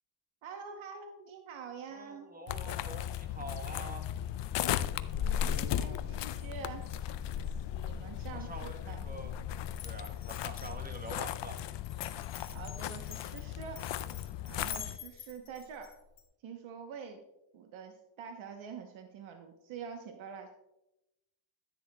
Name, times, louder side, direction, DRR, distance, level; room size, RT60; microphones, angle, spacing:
voice 1, 0.4-2.3 5.2-6.9 7.8-9.0 12.5-13.8 14.4-15.9 16.4-17.2 17.5-20.5, right 6 dB, 85° right, 5 dB, 1.0 m, -46 dB
voice 2, 1.9-4.1 8.3-9.3 9.8-11.6, right 2 dB, 20° right, 5 dB, 1.1 m, -46 dB
sound 1, 2.5-15.0, left 10 dB, 65° left, 0.5 m, -36 dB
Glass, 9.8-16.2, left 8 dB, 85° left, 2.7 m, -47 dB
10.0 x 10.0 x 2.2 m, 0.92 s
cardioid pair, 110°, 46 cm